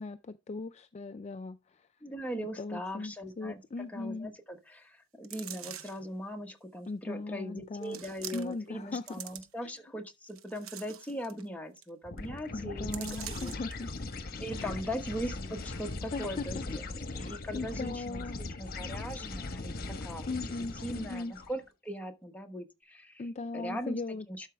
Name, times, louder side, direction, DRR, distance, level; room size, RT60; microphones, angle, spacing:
voice 1, 0.0-1.9 2.4-4.3 6.9-8.0 8.3-9.1 9.6-9.7 12.5-13.9 14.5-14.7 16.1-16.6 17.1-18.4 20.3-21.3 23.2-24.5, left 3 dB, 30° left, 0.4 m, -39 dB
voice 2, 2.0-13.5 14.4-15.4 15.6-16.6 17.1-18.2 18.6-20.3 20.8-23.2 23.5-24.0 24.3-24.5, equal, 5° left, 1.2 m, -40 dB
sound 1, 5.2-6.1 6.8-6.9 7.8-8.7 8.9-9.8 10.3-11.4 11.8-11.9 12.2-12.4 12.9-13.7 14.2-14.3, right 10 dB, 80° right, 0.9 m, -44 dB
sound 2, 12.1-21.5, left 2 dB, 50° left, 1.2 m, -40 dB
12.0 x 4.9 x 3.4 m
head